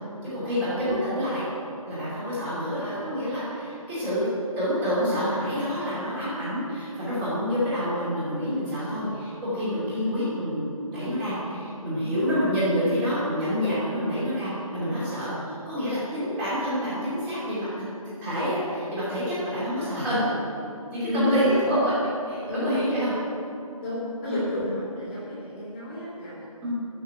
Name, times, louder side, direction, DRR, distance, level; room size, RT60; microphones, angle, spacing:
voice 1, 0.2-1.5 1.9-4.3 4.6-17.7 18.2-20.3 20.9-21.9 22.2-23.1 24.2-24.4 26.6-26.7, equal, 10° right, -10 dB, 2.7 m, -27 dB
voice 2, 21.0-21.6 22.5-22.7 23.8-26.7, left 1 dB, 15° left, -8 dB, 2.4 m, -30 dB
12.5 x 5.8 x 9.1 m, 2.7 s
figure-of-eight pair, 160°, 19 cm